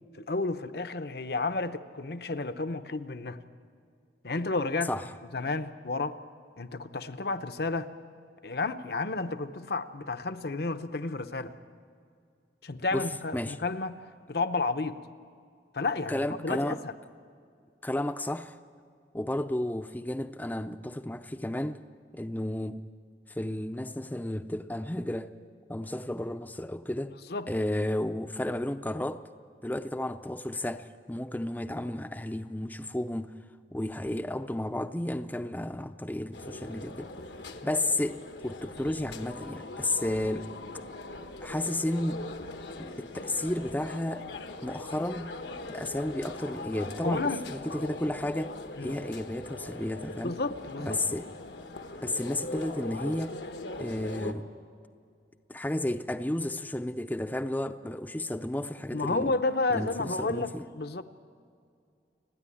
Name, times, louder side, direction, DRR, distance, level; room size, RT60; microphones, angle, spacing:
voice 1, 0.1-3.4 4.2-4.9 5.3-6.2 6.6-7.9 8.4-11.5 12.6-14.0 14.3-15.0 15.7-16.9 27.3-27.5 47.0-47.4 47.7-47.9 48.8-48.9 50.2-51.0 58.9-61.0, left 3 dB, 60° left, 0.8 m, -31 dB
voice 2, 16.1-16.8 17.8-18.5 19.1-21.8 22.1-22.8 23.3-25.3 25.7-27.1 27.5-29.2 29.6-33.4 33.7-37.1 37.6-40.5 41.4-42.3 42.8-44.3 44.6-45.3 45.7-48.5 48.8-50.3 50.8-51.3 52.0-53.4 53.8-54.5 55.5-59.3 59.7-60.6, left 1 dB, 10° left, 0.5 m, -32 dB
sound 1, 36.3-54.3, left 2 dB, 85° left, 1.3 m, -41 dB
29.5 x 10.0 x 10.0 m
head